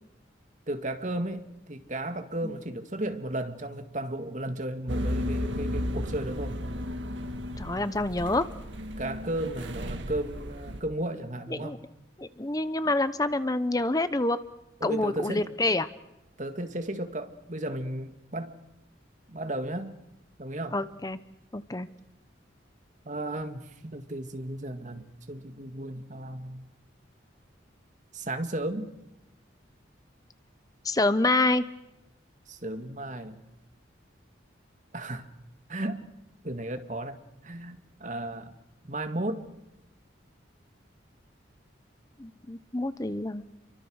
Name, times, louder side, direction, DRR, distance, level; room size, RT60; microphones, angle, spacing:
voice 1, 0.7-6.6 9.0-11.8 14.8-15.5 16.4-18.6 19.3-20.0 20.4-20.8 23.0-26.6 28.1-28.9 32.5-33.4 34.9-35.3 35.7-36.1 36.4-37.2 37.4-38.5 38.8-39.5, right 1 dB, 40° right, 7 dB, 2.0 m, -34 dB
sound 1, 4.9-10.8, equal, 70° right, 1.9 m, -34 dB
voice 2, 7.6-8.5 11.5-11.8 12.2-14.4 14.8-15.9 20.7-21.2 21.5-21.9 30.8-31.6 42.2-43.4, left 2 dB, 20° left, 13 dB, 0.8 m, -27 dB
28.5 x 24.0 x 6.5 m, 0.91 s
head